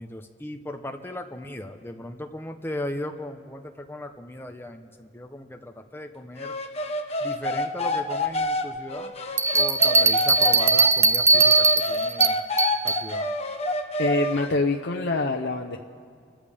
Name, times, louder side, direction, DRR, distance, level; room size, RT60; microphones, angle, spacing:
voice 1, 0.0-6.6 7.2-9.1 9.5-12.4 12.8-13.3, left 1 dB, 10° left, 5 dB, 0.8 m, -37 dB
sound 1, 6.4-10.9 11.3-14.5, left 1 dB, 35° left, 1.1 m, -28 dB
Bell, 9.4-13.0, right 4 dB, 15° right, 0.3 m, -20 dB
voice 2, 14.0-15.8, left 2 dB, 75° left, 2 dB, 0.8 m, -25 dB
29.5 x 14.0 x 3.5 m, 2.1 s
head